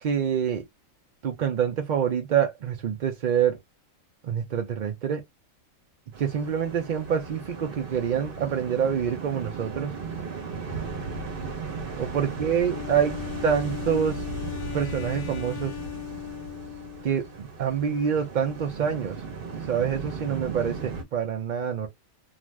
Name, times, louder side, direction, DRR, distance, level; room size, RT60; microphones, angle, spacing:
voice 1, 0.0-0.6 1.2-3.6 4.2-5.2 6.2-9.9 12.0-14.2 14.7-15.7 17.0-19.2 19.7-21.9, right 8 dB, 65° right, 0.4 m, -26 dB
sound 1, 6.1-21.0, right 4 dB, 50° right, 0.8 m, -36 dB
Wind instrument woodwind instrument, 12.6-17.4, left 14 dB, 85° left, 1.1 m, -38 dB
2.4 x 2.4 x 3.1 m
omnidirectional pair, 1.4 m